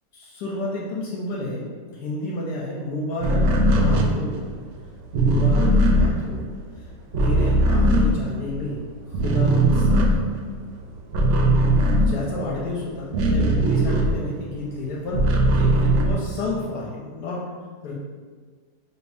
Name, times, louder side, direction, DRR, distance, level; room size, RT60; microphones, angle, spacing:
voice 1, 0.1-1.7 1.9-4.6 5.2-6.8 7.2-10.3 11.9-17.5 17.8-17.9, left 2 dB, 80° left, -4 dB, 1.2 m, -31 dB
sound 1, 3.2-8.8 9.1-14.5 14.9-16.7, right 1 dB, 75° right, 0.7 m, -20 dB
4.7 x 2.6 x 3.3 m, 1.5 s
omnidirectional pair, 1.8 m